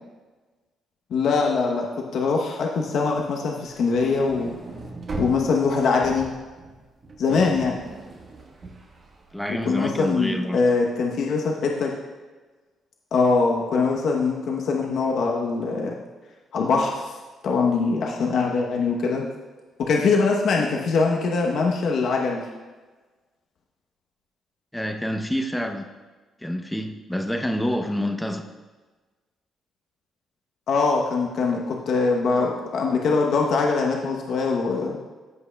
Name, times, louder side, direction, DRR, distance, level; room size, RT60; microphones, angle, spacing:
voice 1, 1.1-1.9 2.1-4.5 5.2-6.3 7.2-7.8 9.6-11.9 13.1-16.0 16.5-17.1 17.4-19.2 19.8-22.4 30.7-35.0, left 4 dB, 70° left, 0 dB, 0.9 m, -22 dB
sound 1, 3.7-10.0, right 3 dB, 45° right, 1.4 m, -39 dB
voice 2, 9.3-10.6 24.7-25.8 26.4-28.5, equal, 5° left, 5 dB, 0.7 m, -27 dB
14.5 x 5.5 x 2.3 m, 1.3 s
cardioid pair, 90°, 0 cm